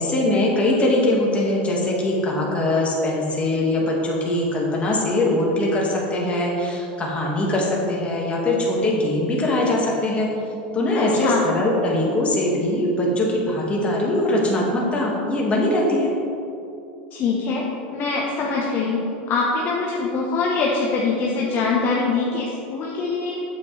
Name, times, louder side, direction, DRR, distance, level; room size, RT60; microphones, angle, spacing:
voice 1, 0.0-10.3 10.7-16.1, left 1 dB, 25° left, -3 dB, 1.9 m, -21 dB
voice 2, 10.9-11.4 17.1-17.6 17.9-23.4, left 4 dB, 40° left, -3 dB, 1.0 m, -23 dB
8.3 x 7.5 x 3.3 m, 2.7 s
supercardioid pair, 115°, 5 cm